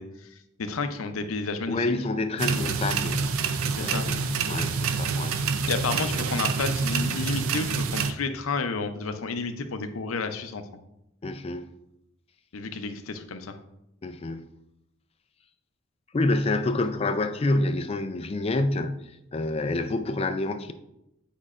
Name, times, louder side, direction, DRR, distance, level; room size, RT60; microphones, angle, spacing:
voice 1, 0.0-1.9 3.8-4.0 5.6-10.6 12.5-13.5, left 4 dB, 80° left, 0.6 m, -31 dB
voice 2, 1.7-3.4 3.8-5.4 11.2-11.7 14.0-14.5 16.1-20.7, left 2 dB, 30° left, 0.4 m, -28 dB
sound 1, 2.4-8.1, right 5 dB, 85° right, 0.5 m, -27 dB
8.5 x 5.2 x 2.5 m
head